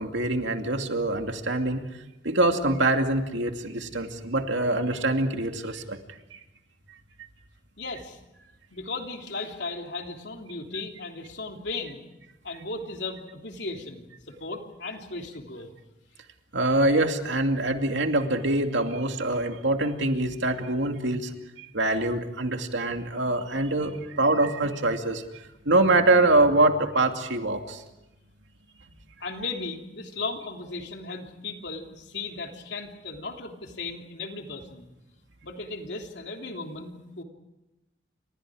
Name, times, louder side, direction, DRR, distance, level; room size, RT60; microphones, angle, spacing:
voice 1, 0.0-1.8 2.2-6.0 6.3-6.4 16.5-21.3 21.6-27.8, right 2 dB, 85° right, 5 dB, 2.5 m, -24 dB
voice 2, 7.8-8.2 8.7-12.1 12.4-15.7 29.2-34.9 35.4-37.2, left 3 dB, 70° left, 3 dB, 3.3 m, -36 dB
30.0 x 27.0 x 5.0 m, 0.95 s
head